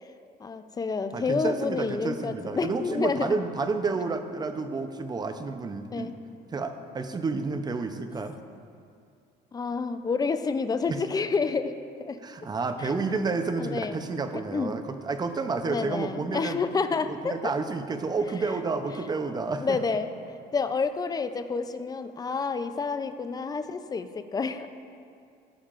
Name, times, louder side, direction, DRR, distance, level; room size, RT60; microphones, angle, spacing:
voice 1, 0.4-3.3 5.9-6.2 9.5-12.2 12.8-12.9 13.6-14.0 14.3-14.7 15.7-17.5 19.3-20.1 20.5-24.7, left 4 dB, 20° left, 10 dB, 0.5 m, -29 dB
voice 2, 1.1-6.1 6.5-8.4 10.9-11.0 12.2-16.6 17.1-19.8, right 4 dB, 25° right, 8 dB, 0.6 m, -30 dB
16.5 x 7.2 x 2.5 m, 2.4 s
cardioid pair, 110°, 17 cm